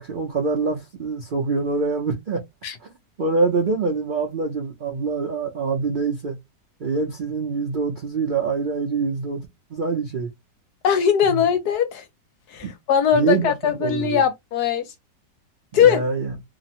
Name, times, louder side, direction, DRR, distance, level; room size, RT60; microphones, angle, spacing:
voice 1, 0.0-2.4 2.8-2.9 3.2-6.4 6.8-10.3 11.2-11.4 12.6-12.7 13.1-14.2 15.8-16.3, right 4 dB, 70° right, 0.5 m, -25 dB
voice 2, 10.8-12.0 12.5-14.9 15.7-16.0, left 8 dB, 70° left, 1.1 m, -20 dB
3.0 x 2.0 x 2.8 m
omnidirectional pair, 1.9 m